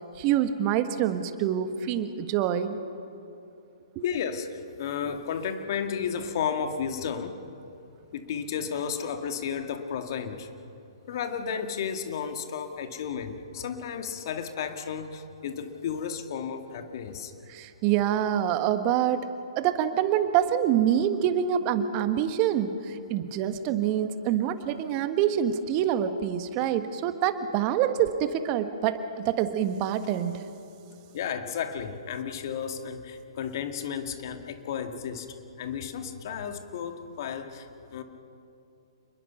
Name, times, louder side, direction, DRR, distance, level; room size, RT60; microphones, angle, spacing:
voice 1, 0.2-2.8 3.9-4.0 17.5-19.3 19.6-30.4, right 10 dB, 30° right, 9 dB, 1.5 m, -26 dB
voice 2, 4.0-7.4 8.1-10.5 11.1-17.3 31.1-35.3 35.6-38.0, left 7 dB, 50° left, 7 dB, 2.0 m, -33 dB
28.5 x 21.0 x 5.9 m, 2.7 s
figure-of-eight pair, 125°, 3 cm